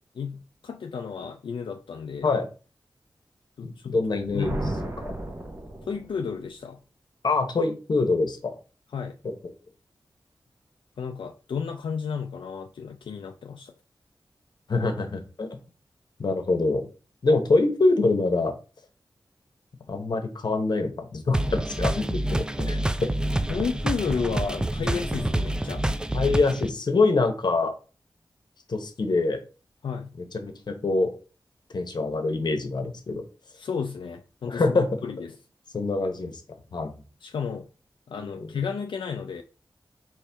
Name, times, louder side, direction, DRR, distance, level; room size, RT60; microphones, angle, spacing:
voice 1, 0.2-2.3 3.6-4.0 4.3-4.7 5.8-6.8 8.9-9.2 11.0-13.7 23.5-25.9 29.8-30.1 33.5-35.3 37.2-37.7 38.1-39.4, left 6 dB, 85° left, 0.4 m, -32 dB
voice 2, 3.6-4.5 5.0-5.1 7.2-8.6 14.7-15.6 16.2-16.9 17.2-18.5 19.9-23.1 26.1-27.7 28.7-29.4 30.4-31.1 31.7-33.2 34.5-35.0 35.7-36.4 36.7-37.0 38.1-38.5, left 3 dB, 60° left, 0.9 m, -25 dB
Thunder, 4.0-6.3, right 1 dB, 30° right, 0.8 m, -34 dB
sound 1, 21.3-26.7, right 1 dB, 10° right, 0.3 m, -27 dB
4.5 x 3.1 x 3.4 m
wide cardioid pair, 95°, 8 cm